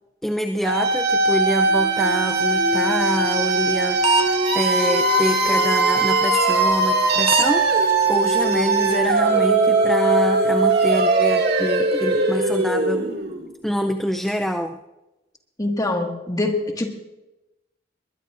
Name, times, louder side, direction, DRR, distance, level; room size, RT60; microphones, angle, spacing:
voice 1, 0.2-13.1 13.6-14.8, equal, ahead, 4 dB, 0.5 m, -26 dB
sound 1, 0.6-13.5, right 3 dB, 60° right, 2.2 m, -20 dB
sound 2, 2.0-9.3, right 3 dB, 30° right, 0.8 m, -30 dB
voice 2, 15.6-16.9, left 2 dB, 20° left, 2 dB, 1.8 m, -24 dB
22.0 x 20.5 x 2.6 m, 0.99 s
head